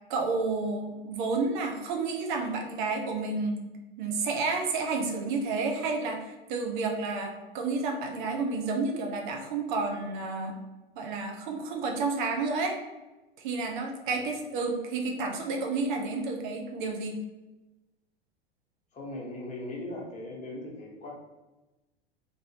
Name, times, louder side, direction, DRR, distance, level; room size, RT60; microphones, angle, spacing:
voice 1, 0.1-3.7 4.0-10.6 11.0-12.8 13.4-17.2, right 3 dB, 50° right, 2 dB, 0.7 m, -30 dB
voice 2, 18.9-21.1, left 1 dB, 25° left, -2 dB, 1.0 m, -39 dB
2.9 x 2.6 x 2.8 m, 1.1 s
figure-of-eight pair, 85°, 31 cm